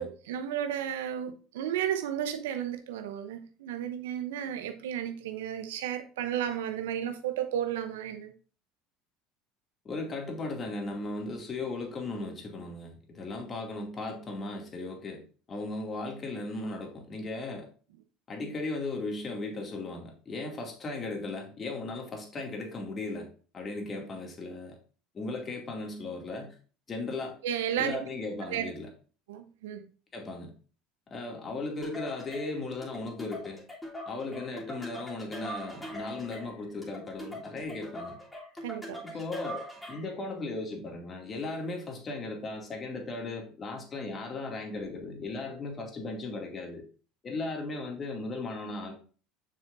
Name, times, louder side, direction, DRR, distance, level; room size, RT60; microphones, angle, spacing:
voice 1, 0.0-8.3 27.4-28.1 28.5-28.7 29.3-29.8 38.6-39.0, right 10 dB, 75° right, 0.8 m, -33 dB
voice 2, 9.8-15.2 15.5-17.7 18.3-23.3 23.5-24.7 25.1-26.6 26.9-27.4 27.8-28.9 30.1-30.5 31.1-33.6 34.1-38.2 39.0-46.8 47.2-48.9, left 3 dB, 35° left, 2.5 m, -37 dB
sound 1, 31.8-40.2, equal, 10° left, 3.2 m, -42 dB
6.9 x 6.5 x 2.7 m
hypercardioid pair, 70°, 0 cm